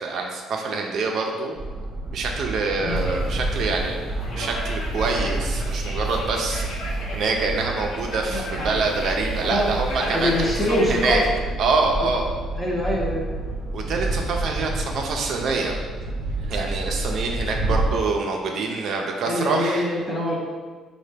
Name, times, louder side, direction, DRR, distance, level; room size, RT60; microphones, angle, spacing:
voice 1, 0.0-1.5 2.1-6.7 7.1-11.2 11.6-12.3 13.7-15.8 16.5-19.9, right 3 dB, 55° right, 1 dB, 0.4 m, -25 dB
sound 1, 1.5-17.9, right 2 dB, 30° right, 0.8 m, -29 dB
sound 2, 2.9-11.3, left 1 dB, 80° left, 0.7 m, -37 dB
voice 2, 8.3-8.8 9.4-11.2 12.0-12.1 12.6-13.3 19.2-20.4, left 1 dB, 10° left, -3 dB, 0.6 m, -25 dB
4.2 x 2.1 x 3.2 m, 1.5 s
cardioid pair, 140°, 0 cm